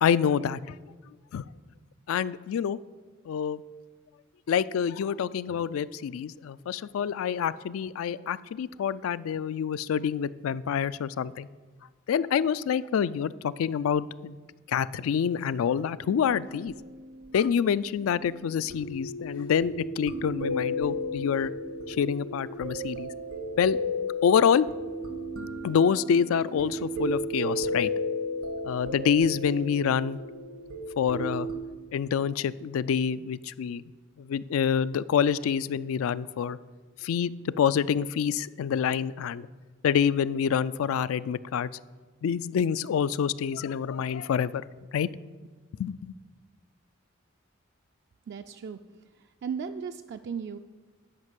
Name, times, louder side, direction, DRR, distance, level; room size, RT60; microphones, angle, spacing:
voice 1, 0.0-0.8 1.3-1.4 2.1-2.8 3.3-3.6 4.5-11.5 12.1-14.4 14.7-16.7 17.3-21.5 21.9-23.1 23.6-23.8 24.2-24.7 25.6-27.9 28.6-30.2 31.0-31.5 31.9-33.8 34.2-36.6 37.0-39.5 39.8-41.7 42.2-44.6 44.9-45.1 45.8-46.1, left 7 dB, 90° left, 17 dB, 0.3 m, -27 dB
sound 1, 16.0-31.6, left 1 dB, 85° right, 1.4 m, -34 dB
voice 2, 48.3-48.8 49.4-50.6, right 6 dB, 55° right, 7 dB, 0.3 m, -35 dB
9.5 x 5.2 x 7.4 m, 1.4 s
head